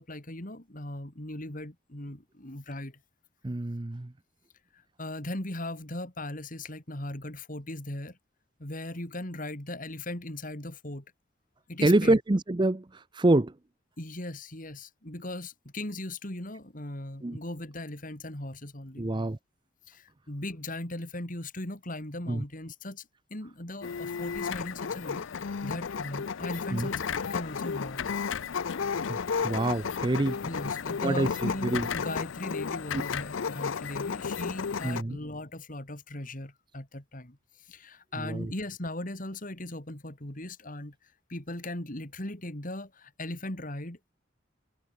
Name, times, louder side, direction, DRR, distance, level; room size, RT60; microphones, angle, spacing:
voice 1, 0.0-3.0 4.7-8.2 8.6-11.0 11.7-12.2 14.0-19.1 19.9-28.0 30.4-41.0 41.3-44.1, left 1 dB, 45° left, 3.5 m, -38 dB
voice 2, 3.4-4.1 11.8-13.5 17.2-17.4 19.0-19.4 22.3-22.4 26.7-26.9 29.1-29.2 29.4-30.4 31.0-31.9 32.9-33.0 34.8-35.2 38.2-38.5, right 2 dB, 25° right, 0.6 m, -26 dB
sound 1, 23.8-35.0, left 6 dB, 75° left, 0.6 m, -33 dB
head